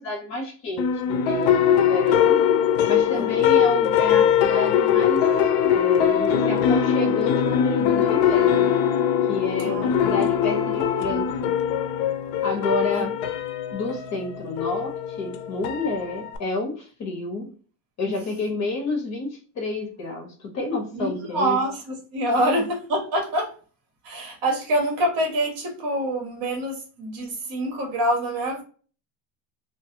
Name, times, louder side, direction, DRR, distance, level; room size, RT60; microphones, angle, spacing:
voice 1, 0.0-2.4 2.8-5.2 5.7-8.7 9.3-11.5 12.4-13.1 13.7-17.5 18.0-21.6, left 2 dB, 40° left, 1 dB, 1.1 m, -30 dB
sound 1, 0.8-16.4, left 9 dB, 65° left, 0.5 m, -21 dB
voice 2, 20.9-23.5 24.0-28.6, right 1 dB, 55° right, 1 dB, 1.3 m, -26 dB
2.6 x 2.5 x 2.7 m, 0.39 s
cardioid pair, 155°, 41 cm